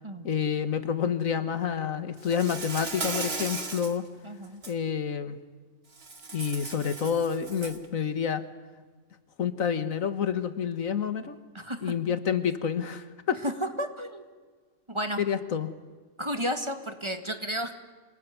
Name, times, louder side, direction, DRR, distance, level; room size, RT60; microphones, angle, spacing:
voice 1, 0.2-4.0 4.7-5.4 6.3-8.4 9.4-11.4 11.8-13.4 15.2-15.7, left 7 dB, 80° left, 12 dB, 1.8 m, -28 dB
Insect, 2.2-4.0 4.4-4.7 6.0-7.9, right 3 dB, 45° right, 2.2 m, -36 dB
voice 2, 4.2-4.6 11.5-11.9 13.4-13.5 13.8-14.3 14.9-15.2 16.2-17.7, equal, 20° right, 8 dB, 1.8 m, -32 dB
27.5 x 19.5 x 9.4 m, 1.4 s
omnidirectional pair, 1.4 m